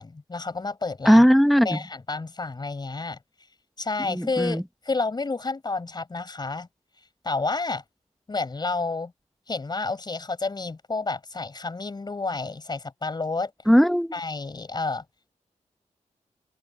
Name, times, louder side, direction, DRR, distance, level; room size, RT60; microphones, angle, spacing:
voice 1, 0.0-1.2 1.6-3.2 3.8-6.7 7.2-7.8 8.3-9.1 9.5-13.5 14.1-15.0, left 3 dB, 35° left, 6.6 m, -30 dB
voice 2, 1.1-1.8 4.1-4.6 13.7-14.1, equal, ahead, 1.0 m, -18 dB
open air
wide cardioid pair, 120°, 13 cm